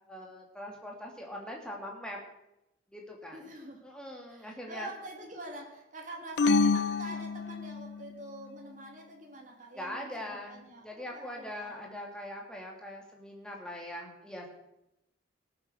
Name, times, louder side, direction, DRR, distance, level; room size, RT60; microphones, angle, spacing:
voice 1, 0.1-2.2 2.9-3.5 3.8-4.9 6.6-6.9 9.7-14.5, left 1 dB, 5° left, -1 dB, 2.6 m, -42 dB
voice 2, 3.3-3.8 4.3-11.8, right 1 dB, 40° right, 1 dB, 2.7 m, -46 dB
sound 1, 6.4-8.0, left 4 dB, 60° left, 0.4 m, -27 dB
18.5 x 7.7 x 6.4 m, 0.88 s
head